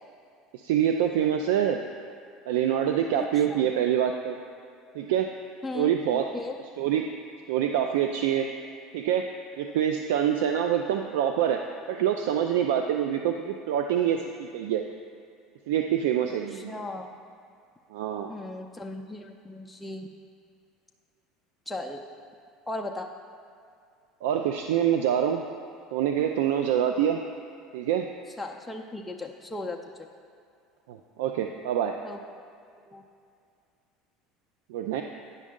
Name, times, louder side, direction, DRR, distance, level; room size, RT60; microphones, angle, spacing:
voice 1, 0.5-1.8 2.5-4.4 5.0-5.3 5.7-6.3 6.8-7.1 7.5-8.5 8.9-9.3 9.6-11.6 11.9-14.8 15.7-16.7 17.9-18.3 24.2-25.4 25.9-27.2 27.7-28.1 30.9-32.0 34.7-35.0, right 9 dB, 85° right, 5 dB, 0.3 m, -25 dB
voice 2, 3.2-3.7 5.6-6.6 16.5-17.1 18.3-20.1 21.7-22.0 22.7-23.1 28.4-29.8 32.0-32.2 32.9-33.0, left 2 dB, 10° left, 0 dB, 0.5 m, -37 dB
9.2 x 5.2 x 3.7 m, 2.4 s
supercardioid pair, 105°, 0 cm